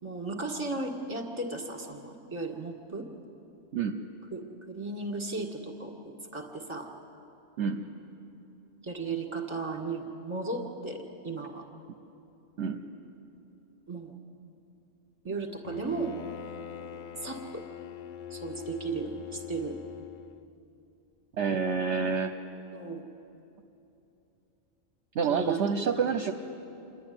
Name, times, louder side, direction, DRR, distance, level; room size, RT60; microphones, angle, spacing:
voice 1, 0.0-3.1 4.3-5.9 6.3-6.9 8.8-11.7 13.9-14.2 15.2-16.2 17.2-17.6 18.3-19.8 22.7-23.0 25.3-25.6, right 3 dB, 20° right, 3 dB, 1.9 m, -35 dB
Bowed string instrument, 15.6-20.5, left 9 dB, 60° left, 0.5 m, -43 dB
voice 2, 21.4-22.3 25.1-26.3, right 6 dB, 60° right, 5 dB, 1.0 m, -28 dB
27.5 x 11.0 x 9.6 m, 2.9 s
omnidirectional pair, 1.4 m